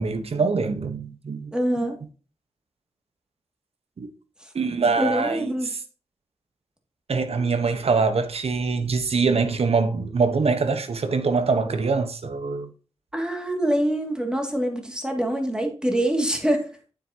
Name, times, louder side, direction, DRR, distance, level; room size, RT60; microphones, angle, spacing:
voice 1, 0.0-1.5 4.0-4.1 4.5-5.5 7.1-12.7, right 4 dB, 65° right, 1.1 m, -24 dB
voice 2, 1.5-1.9 4.4-4.5 5.0-5.7 13.1-16.7, right 1 dB, 5° right, 2.3 m, -25 dB
9.2 x 7.8 x 2.9 m
wide cardioid pair, 75°, 11 cm